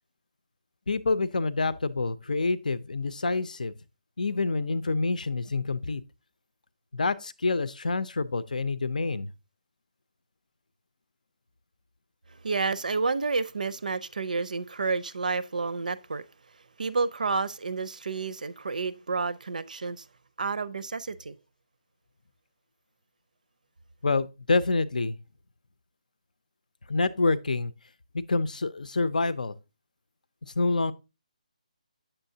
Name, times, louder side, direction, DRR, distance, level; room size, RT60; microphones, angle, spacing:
voice 1, 0.9-3.7 4.2-6.0 6.9-9.3 24.0-25.2 26.9-27.7 28.3-29.5 30.6-30.9, left 3 dB, 80° left, 0.6 m, -27 dB
voice 2, 12.4-16.2 16.8-20.0 20.4-21.4, right 4 dB, 85° right, 0.6 m, -30 dB
8.9 x 6.9 x 2.7 m
hypercardioid pair, 180°, 4 cm